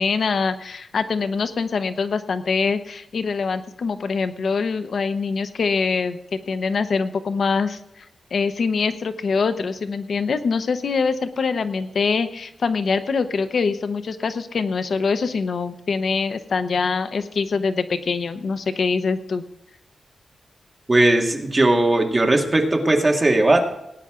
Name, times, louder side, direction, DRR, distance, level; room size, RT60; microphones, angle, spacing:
voice 1, 0.0-8.1 8.3-19.4, left 5 dB, 60° left, 10 dB, 0.8 m, -24 dB
voice 2, 20.9-23.7, right 2 dB, 20° right, 2 dB, 2.0 m, -18 dB
18.5 x 9.8 x 3.7 m, 0.85 s
wide cardioid pair, 140°, 0 cm